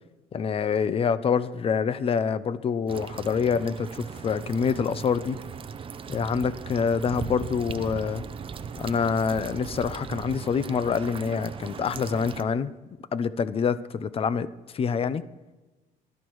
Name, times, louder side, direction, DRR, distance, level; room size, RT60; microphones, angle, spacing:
voice 1, 0.3-5.4 6.1-8.2 8.8-12.7 13.1-14.5 14.7-15.2, left 6 dB, 35° left, 15 dB, 0.6 m, -26 dB
sound 1, 2.9-12.4, right 6 dB, 30° right, 0.7 m, -38 dB
20.0 x 12.0 x 3.1 m, 1.2 s
cardioid pair, 110°, 17 cm